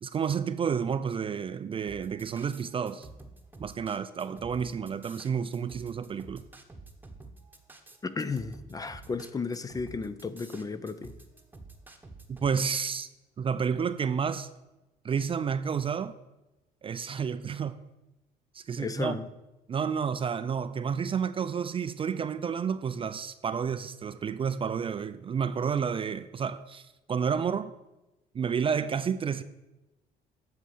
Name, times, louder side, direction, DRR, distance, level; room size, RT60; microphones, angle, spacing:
voice 1, 0.0-3.1 3.6-6.4 12.3-13.1 13.4-14.5 15.0-16.2 16.8-17.8 18.5-19.2 19.7-27.7 28.3-29.4, right 6 dB, 30° right, 0.4 m, -30 dB
sound 1, 1.9-12.5, right 2 dB, 10° right, 1.1 m, -49 dB
voice 2, 8.0-11.1 18.8-19.3, left 4 dB, 20° left, 0.6 m, -34 dB
8.4 x 6.4 x 7.3 m
cardioid pair, 110°, 17 cm